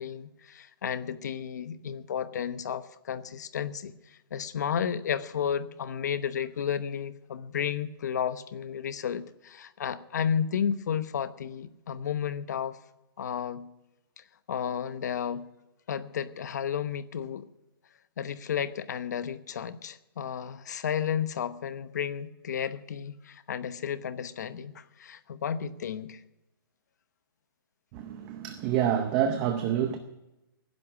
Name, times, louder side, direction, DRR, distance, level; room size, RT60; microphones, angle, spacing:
voice 1, 0.0-12.8 13.2-13.6 14.2-15.5 15.9-17.5 18.2-26.2, left 8 dB, 50° left, 13 dB, 1.0 m, -32 dB
voice 2, 27.9-30.0, right 9 dB, 15° right, 7 dB, 0.7 m, -27 dB
18.0 x 11.0 x 6.1 m, 0.96 s
hypercardioid pair, 175°, 12 cm